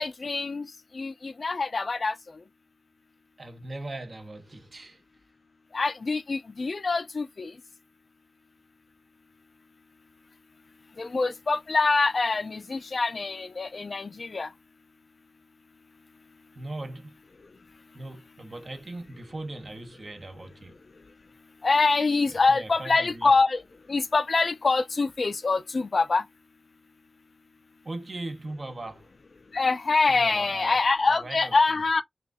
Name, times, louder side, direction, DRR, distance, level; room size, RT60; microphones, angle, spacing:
voice 1, 0.0-2.2 5.7-7.5 11.0-14.5 21.6-23.6 23.9-26.2 29.5-32.0, left 3 dB, 60° left, 0.6 m, -25 dB
voice 2, 3.4-5.0 16.5-17.2 17.9-20.8 22.3-23.3 27.8-29.1 30.1-30.8 31.1-31.8, right 2 dB, 45° right, 1.0 m, -39 dB
5.7 x 2.6 x 2.3 m
wide cardioid pair, 70°, 0 cm